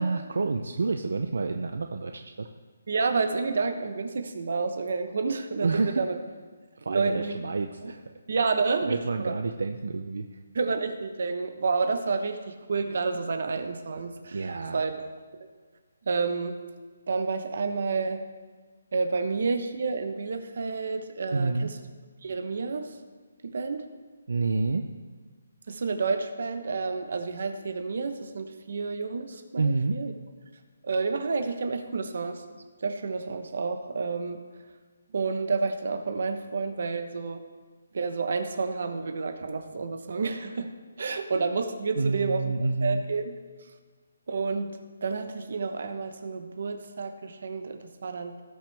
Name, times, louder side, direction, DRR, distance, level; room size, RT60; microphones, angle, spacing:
voice 1, 0.0-2.5 5.6-6.0 6.8-8.0 8.8-10.4 14.3-14.8 21.3-21.7 24.3-24.9 29.6-30.0 41.9-43.0, right 3 dB, 70° right, 5 dB, 0.6 m, -28 dB
voice 2, 2.9-6.2 6.9-7.4 7.8-7.9 8.3-9.3 10.5-14.4 14.7-15.0 15.4-15.5 16.1-16.6 17.1-18.2 18.9-21.7 22.2-23.0 23.4-23.8 25.7-30.1 30.8-32.4 32.8-34.4 35.1-37.4 37.9-40.7 41.0-42.4 42.8-43.3 44.3-44.7 45.0-48.4, right 4 dB, 50° right, 7 dB, 1.0 m, -29 dB
18.5 x 6.2 x 3.5 m, 1.4 s
hypercardioid pair, 175°, 0 cm